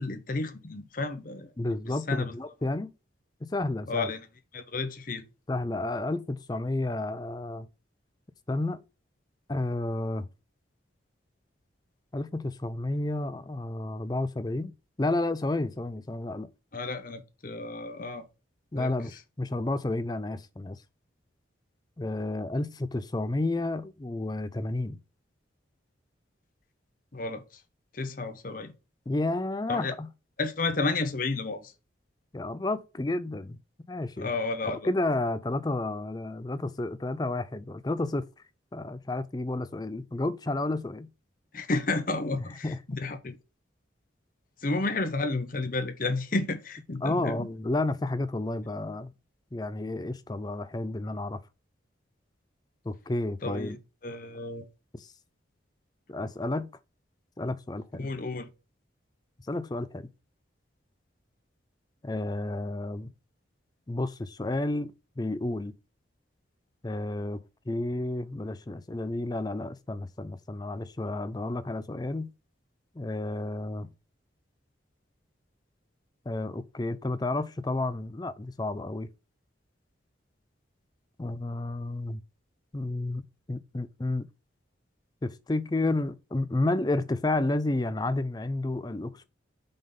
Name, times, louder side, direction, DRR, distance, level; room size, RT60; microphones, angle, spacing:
voice 1, 0.0-1.5 1.9-2.3 3.9-4.3 4.5-5.2 16.7-18.2 18.7-19.2 27.1-27.6 27.9-28.7 29.7-29.9 30.4-31.7 34.2-34.9 41.5-43.4 44.6-47.5 53.4-53.8 54.0-54.7 58.0-58.5, left 3 dB, 45° left, 0.8 m, -32 dB
voice 2, 1.6-2.9 3.4-4.1 5.5-7.7 8.5-8.8 9.5-10.3 12.1-14.7 15.0-16.5 18.7-20.8 22.0-25.0 29.1-30.1 32.3-33.6 33.9-34.3 34.7-38.2 38.7-41.1 42.6-43.0 47.0-49.1 49.5-51.4 52.8-53.8 55.0-55.1 56.1-56.7 57.4-58.1 59.5-60.1 62.0-63.1 63.9-65.7 66.8-72.3 73.0-73.9 76.3-79.1 81.2-82.2 82.7-84.3 85.2-89.3, left 2 dB, 20° left, 0.4 m, -31 dB
5.2 x 3.9 x 5.3 m
head